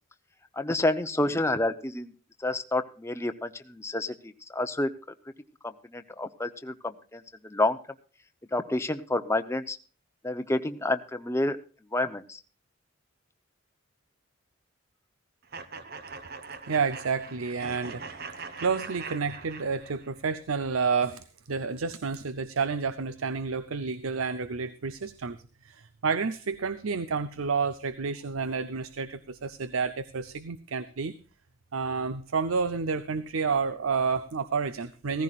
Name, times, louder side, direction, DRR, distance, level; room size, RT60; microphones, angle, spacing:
voice 1, 0.6-2.1 2.4-4.9 5.6-7.8 8.5-9.8 10.2-11.6 11.9-12.4, left 2 dB, 15° left, 9 dB, 0.7 m, -29 dB
sound 1, 15.5-20.1, right 4 dB, 50° right, 1.1 m, -42 dB
voice 2, 16.7-18.0 18.6-25.4 25.6-31.2 31.7-35.2, right 5 dB, 85° right, 14 dB, 0.7 m, -30 dB
16.0 x 15.0 x 2.4 m, 0.36 s
head